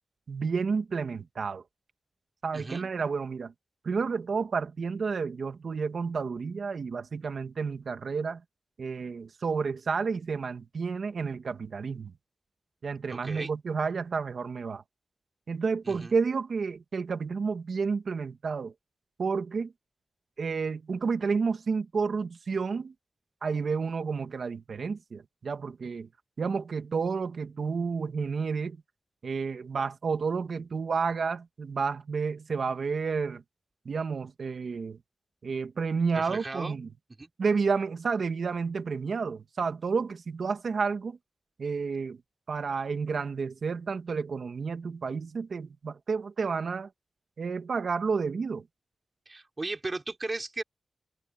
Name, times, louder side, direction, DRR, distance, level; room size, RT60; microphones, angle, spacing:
voice 1, 0.3-1.6 2.4-3.5 3.8-8.4 8.8-12.1 12.8-14.8 15.5-18.7 19.2-19.7 20.4-22.9 23.4-26.1 26.4-28.8 29.2-33.4 33.9-35.0 35.4-36.9 37.4-41.2 41.6-42.2 42.5-46.9 47.4-48.6, right 5 dB, 70° right, 1.9 m, -30 dB
voice 2, 2.5-2.9 13.1-13.5 15.9-16.1 36.1-36.8 37.2-37.3 49.3-50.6, right 2 dB, 30° right, 5.4 m, -36 dB
wide cardioid pair, 110°, 0 cm